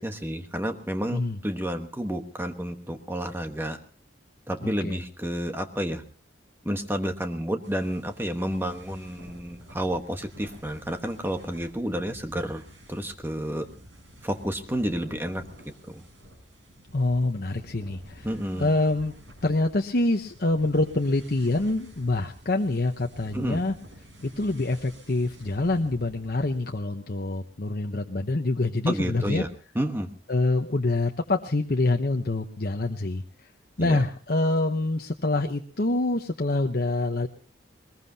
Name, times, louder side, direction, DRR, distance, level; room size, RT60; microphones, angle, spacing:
voice 1, 0.0-3.8 4.5-6.0 6.6-12.6 12.9-13.7 14.2-16.0 18.2-18.7 23.3-23.6 28.9-29.5 29.7-30.1 33.8-34.0, equal, 10° right, 6 dB, 1.2 m, -30 dB
voice 2, 4.6-5.0 16.9-18.3 18.6-19.1 19.4-23.7 24.2-29.4 30.3-33.2 33.8-37.3, left 2 dB, 50° left, 3 dB, 0.9 m, -26 dB
sound 1, 7.6-26.7, equal, 80° right, 6.9 m, -50 dB
22.0 x 20.5 x 2.8 m, 0.37 s
head